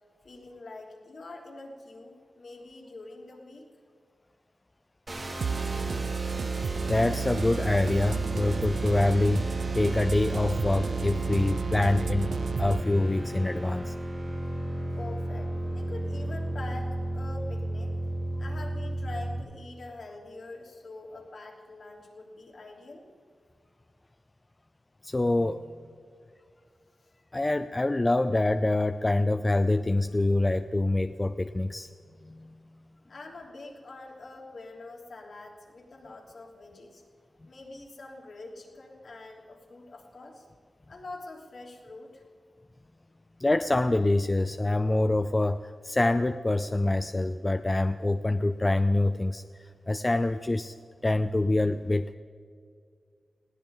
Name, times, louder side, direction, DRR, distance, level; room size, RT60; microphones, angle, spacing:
voice 1, 0.2-3.7 15.0-17.9 18.4-23.1 33.1-37.0 37.5-40.5 40.9-42.2, left 2 dB, 55° left, -2 dB, 3.1 m, -44 dB
sound 1, 5.1-19.4, right 1 dB, 25° right, 1.7 m, -34 dB
sound 2, 5.4-12.8, right 6 dB, 90° right, 0.5 m, -31 dB
voice 2, 6.9-12.3 12.6-14.0 25.0-25.6 27.3-31.9 32.2-32.6 43.4-50.7 51.0-52.1, left 2 dB, 20° left, 10 dB, 0.4 m, -26 dB
20.5 x 17.0 x 3.9 m, 2.1 s
wide cardioid pair, 165°, 0 cm